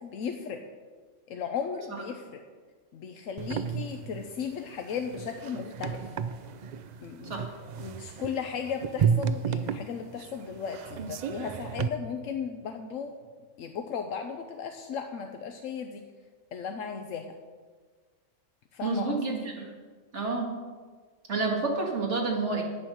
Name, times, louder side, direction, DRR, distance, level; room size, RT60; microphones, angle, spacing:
voice 1, 0.0-0.6 1.3-2.4 2.9-6.1 7.0-7.5 7.8-13.1 13.6-16.0 16.5-17.3 18.7-19.5, left 6 dB, 80° left, 5 dB, 1.1 m, -36 dB
sound 1, 3.4-11.9, right 7 dB, 80° right, 0.4 m, -32 dB
voice 2, 18.8-19.4 20.1-20.5 21.3-22.6, right 3 dB, 60° right, 0 dB, 2.1 m, -28 dB
10.0 x 8.8 x 6.2 m, 1.5 s
omnidirectional pair, 1.3 m